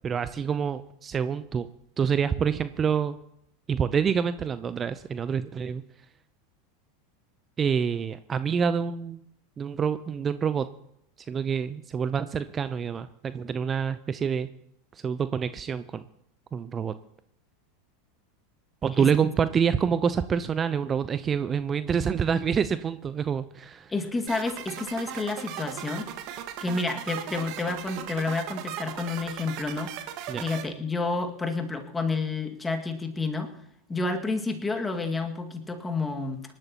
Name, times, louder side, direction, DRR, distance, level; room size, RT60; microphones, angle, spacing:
voice 1, 0.0-1.7 2.0-3.2 3.7-5.8 7.6-9.2 9.6-10.7 11.3-14.5 14.9-16.0 16.5-16.9 18.8-23.9 30.3-30.4, right 7 dB, 25° right, 13 dB, 0.6 m, -27 dB
voice 2, 19.0-19.3 23.9-26.1 26.6-30.0 30.4-33.5 33.9-36.4, left 3 dB, 15° left, 4 dB, 2.0 m, -30 dB
sound 1, 24.3-30.6, right 10 dB, 50° right, 1.6 m, -37 dB
26.0 x 12.5 x 3.0 m, 0.76 s
figure-of-eight pair, 85°, 0 cm